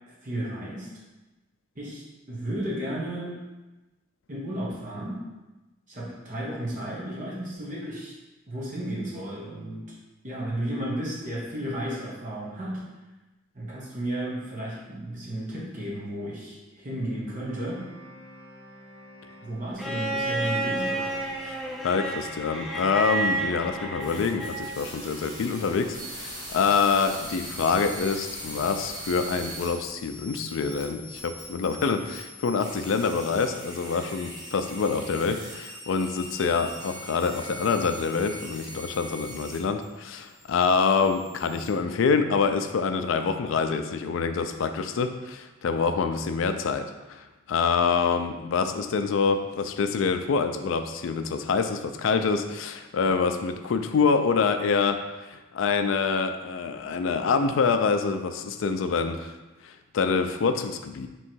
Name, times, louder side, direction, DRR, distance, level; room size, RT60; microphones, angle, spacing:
voice 1, 0.2-0.9 1.7-3.4 4.3-5.3 5.9-8.1 8.5-9.9 10.2-12.9 13.5-17.8 19.4-21.1, right 1 dB, 40° right, -6 dB, 1.0 m, -33 dB
sound 1, 17.5-23.4, right 1 dB, 85° right, 0.5 m, -48 dB
Bowed string instrument, 19.8-24.8 26.3-26.4, right 2 dB, ahead, 0.5 m, -30 dB
voice 2, 21.8-55.0 55.3-59.3 59.6-61.1, left 5 dB, 75° left, 8 dB, 0.4 m, -26 dB
sound 2, 24.0-39.8 40.1-41.7, equal, 20° right, 1.0 m, -41 dB
3.6 x 3.0 x 4.4 m, 1.1 s
head